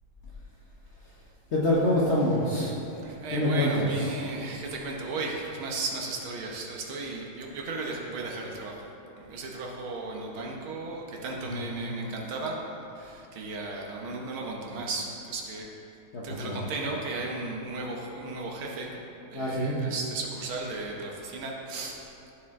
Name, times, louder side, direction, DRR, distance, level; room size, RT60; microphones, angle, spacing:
voice 1, 1.5-2.8 3.3-3.9 11.5-11.7 16.1-16.6 19.3-19.8, left 1 dB, 45° left, -6 dB, 0.9 m, -26 dB
voice 2, 3.0-8.8 9.2-12.6 13.0-15.7 16.2-18.9 19.3-22.0, right 3 dB, 85° right, -1 dB, 1.9 m, -35 dB
14.0 x 4.7 x 3.6 m, 2.9 s
omnidirectional pair, 2.2 m